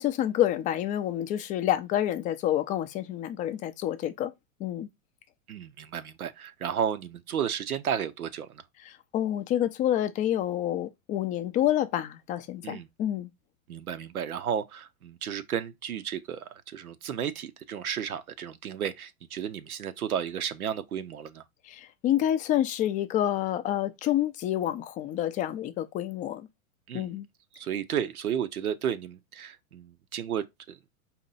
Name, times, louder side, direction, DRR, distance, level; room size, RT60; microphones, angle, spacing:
voice 1, 0.0-4.3 4.6-4.9 8.8-13.3 21.7-26.5 26.9-27.3, left 12 dB, 20° left, 0.4 m, -28 dB
voice 2, 5.5-8.6 12.6-12.9 13.7-21.4 26.9-27.1 27.5-30.9, right 8 dB, 85° right, 0.7 m, -33 dB
4.3 x 2.9 x 3.9 m
hypercardioid pair, 100°, 42 cm